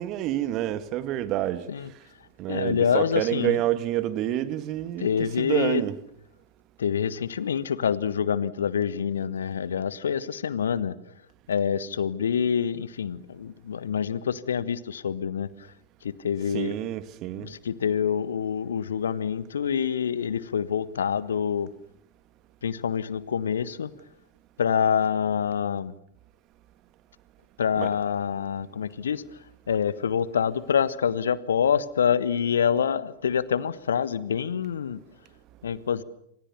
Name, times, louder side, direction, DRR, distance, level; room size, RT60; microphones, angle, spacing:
voice 1, 0.0-1.7 2.4-5.1 5.4-6.0 16.5-17.5 27.8-27.9, right 13 dB, 40° right, 2.0 m, -28 dB
voice 2, 2.5-3.6 5.0-5.8 6.8-11.0 11.5-15.5 16.0-16.7 17.3-21.7 22.6-23.9 24.6-25.9 27.6-29.2 29.7-35.0 35.6-36.0, left 7 dB, 65° left, 1.4 m, -26 dB
28.5 x 26.5 x 7.1 m
figure-of-eight pair, 90°, 0 cm